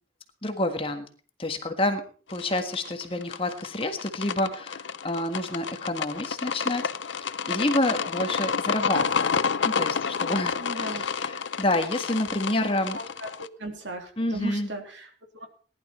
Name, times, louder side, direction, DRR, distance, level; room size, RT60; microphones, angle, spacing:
voice 1, 0.4-1.1 1.4-2.0 2.3-9.3 9.7-13.0 14.2-14.7, left 1 dB, 30° left, 6 dB, 1.5 m, -28 dB
sound 1, 2.3-13.5, left 6 dB, 80° left, 0.7 m, -29 dB
voice 2, 10.6-11.1 12.5-15.5, right 1 dB, 75° right, 3 dB, 3.3 m, -37 dB
18.5 x 11.5 x 4.4 m, 0.41 s
head